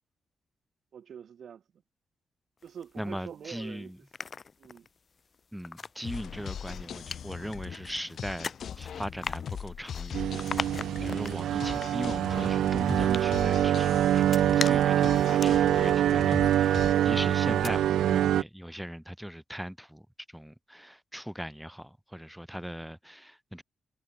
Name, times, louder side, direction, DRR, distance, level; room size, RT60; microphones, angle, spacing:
voice 1, 0.9-1.6 2.6-4.2 4.6-4.9, right 8 dB, 60° right, 4.0 m, -45 dB
sound 1, 2.6-3.5 3.9-17.1 17.4-17.7, left 5 dB, 40° left, 2.4 m, -41 dB
voice 2, 3.0-4.0 5.5-10.8 11.0-14.3 14.6-20.1 20.3-23.6, equal, ahead, 3.0 m, -39 dB
sound 2, 6.0-16.9, left 8 dB, 60° left, 1.0 m, -40 dB
sound 3, 10.1-18.4, right 11 dB, 85° right, 1.2 m, -25 dB
cardioid pair, 115°, 0 cm